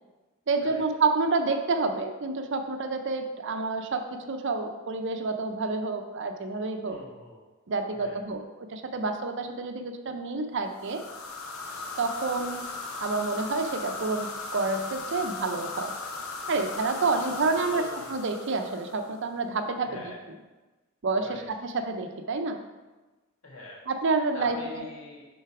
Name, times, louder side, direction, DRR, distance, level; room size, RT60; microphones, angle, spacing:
voice 1, 0.5-7.0 7.7-8.4 8.7-11.0 12.0-12.6 13.0-15.9 16.5-17.8 18.1-20.0 21.0-22.6 23.9-24.6, right 3 dB, 60° right, 6 dB, 0.6 m, -28 dB
voice 2, 6.8-7.4 8.0-8.2 17.0-17.4 17.7-18.1 19.8-20.2 21.2-21.5 23.4-23.8 24.3-25.3, left 2 dB, 70° left, -3 dB, 1.8 m, -43 dB
sound 1, 10.7-19.3, left 3 dB, 90° left, 0.8 m, -37 dB
6.6 x 3.9 x 4.8 m, 1.2 s
head